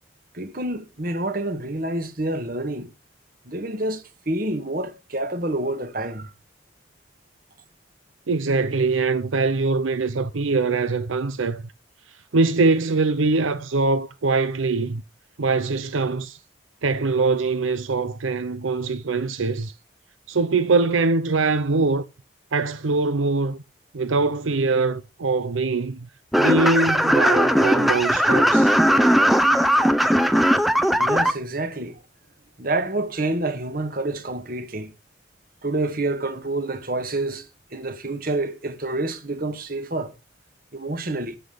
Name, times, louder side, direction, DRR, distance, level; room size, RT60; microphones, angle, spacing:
voice 1, 0.3-2.9 3.4-6.3 31.0-32.0 32.6-34.9 35.6-40.1 40.7-41.4, right 2 dB, 45° right, 1.6 m, -28 dB
voice 2, 8.3-11.6 12.3-15.0 15.4-16.4 16.8-19.7 20.3-22.0 22.5-23.6 23.9-26.1 26.4-28.7, right 3 dB, 90° right, 0.7 m, -22 dB
sound 1, 26.3-31.3, equal, ahead, 0.6 m, -18 dB
13.0 x 6.0 x 5.1 m
head